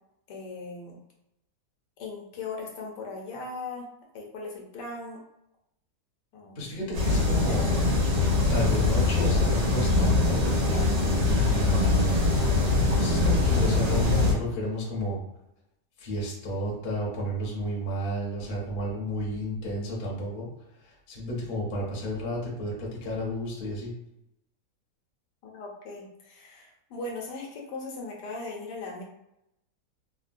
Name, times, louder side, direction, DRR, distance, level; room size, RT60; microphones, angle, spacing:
voice 1, 0.3-1.0 2.0-3.9 4.1-5.2 6.3-6.7 11.5-11.9 25.4-29.0, left 3 dB, 80° left, -1 dB, 1.3 m, -38 dB
voice 2, 6.6-7.7 8.5-10.5 11.2-12.2 13.0-15.2 16.0-20.5 20.8-23.9, equal, 40° left, -4 dB, 0.8 m, -32 dB
sound 1, 6.9-14.3, left 2 dB, 80° right, 1.6 m, -23 dB
3.5 x 2.1 x 2.5 m, 0.83 s
omnidirectional pair, 1.8 m